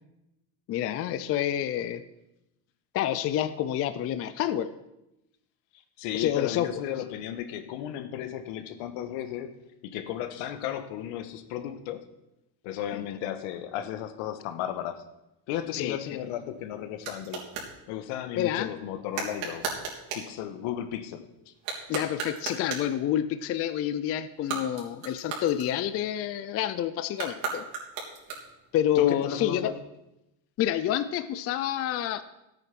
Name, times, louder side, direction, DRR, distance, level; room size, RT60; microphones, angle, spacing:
voice 1, 0.7-2.0 2.9-4.7 6.1-6.7 12.9-13.2 15.7-16.0 18.4-18.7 21.9-27.7 28.7-29.7 30.6-32.2, left 11 dB, 30° left, 12 dB, 0.4 m, -28 dB
voice 2, 6.0-9.6 9.8-12.0 12.6-15.1 15.5-17.5 17.9-19.8 20.1-21.5 28.9-29.7, left 10 dB, 80° left, 9 dB, 1.5 m, -34 dB
sound 1, 16.0-17.7 19.1-20.3 21.5-23.0 24.3-26.1 27.1-28.7, right 5 dB, 60° right, 3.6 m, -36 dB
13.0 x 9.0 x 6.0 m, 0.91 s
cardioid pair, 160°, 48 cm